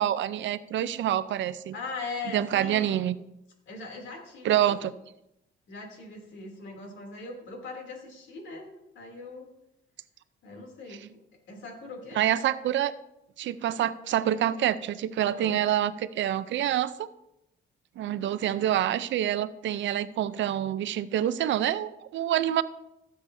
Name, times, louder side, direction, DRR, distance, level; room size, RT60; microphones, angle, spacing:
voice 1, 0.0-1.7 2.3-3.2 4.4-4.9 12.2-12.9 13.4-17.1 18.0-22.6, right 11 dB, 70° right, 15 dB, 0.5 m, -27 dB
voice 2, 1.7-3.0 3.7-4.7 5.7-8.7 8.9-9.5 10.4-11.2 11.5-12.2 15.2-15.6 18.5-18.9, left 3 dB, 70° left, 1 dB, 2.9 m, -40 dB
15.5 x 7.9 x 2.7 m, 0.86 s
cardioid pair, 90°, 20 cm